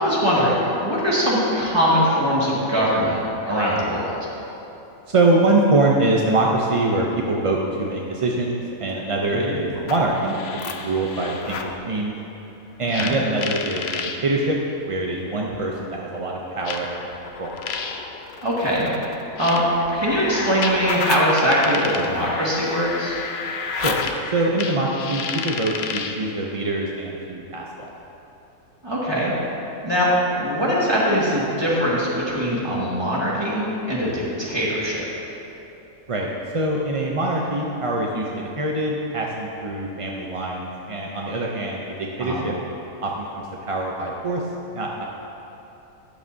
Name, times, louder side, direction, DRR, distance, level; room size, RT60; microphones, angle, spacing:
voice 1, 0.0-3.2 3.5-4.2 9.4-9.6 13.0-13.2 18.4-18.9 19.4-19.6 19.9-23.2 28.8-29.3 29.8-35.1 42.2-42.4, equal, 20° right, -7 dB, 2.0 m, -21 dB
voice 2, 5.1-10.4 10.7-12.1 12.8-14.6 14.9-17.0 17.4-17.5 23.8-24.0 24.3-27.6 36.1-36.3 36.5-42.5 43.0-44.4 44.7-45.0, right 2 dB, 40° right, -1 dB, 0.4 m, -24 dB
sound 1, 9.7-11.8 12.9-14.2 15.3-15.4 16.7-26.2, left 5 dB, 60° left, 0.8 m, -31 dB
12.5 x 10.0 x 2.7 m, 3.0 s
omnidirectional pair, 1.5 m